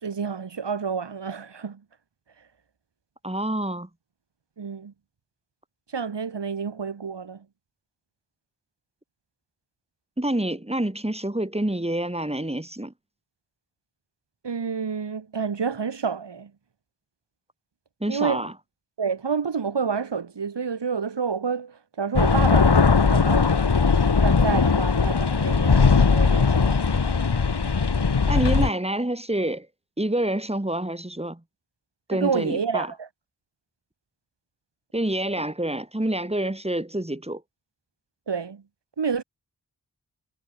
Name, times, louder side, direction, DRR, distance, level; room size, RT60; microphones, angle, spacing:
voice 1, 0.0-1.8 4.6-4.9 5.9-7.4 14.4-16.5 18.1-18.4 19.0-22.8 23.1-23.5 24.2-26.8 32.1-33.1 38.3-38.6 39.0-39.2, right 6 dB, 80° right, 5.2 m, -29 dB
voice 2, 3.2-3.9 10.2-12.9 18.0-18.5 28.3-29.7 30.0-31.4 32.1-32.9 34.9-37.4, right 1 dB, 15° right, 7.1 m, -27 dB
sound 1, 22.2-28.7, left 5 dB, 70° left, 8.0 m, -19 dB
cardioid pair, 55°, 41 cm